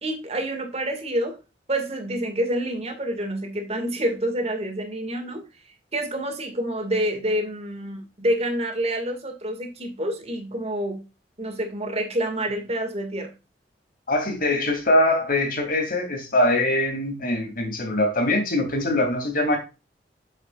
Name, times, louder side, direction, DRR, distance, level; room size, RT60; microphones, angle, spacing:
voice 1, 0.0-1.4 1.7-5.5 5.9-11.0 11.4-13.3, right 1 dB, 35° right, 5 dB, 2.2 m, -27 dB
voice 2, 14.1-19.6, left 1 dB, 55° left, 4 dB, 2.9 m, -22 dB
8.1 x 7.3 x 2.5 m, 0.28 s
head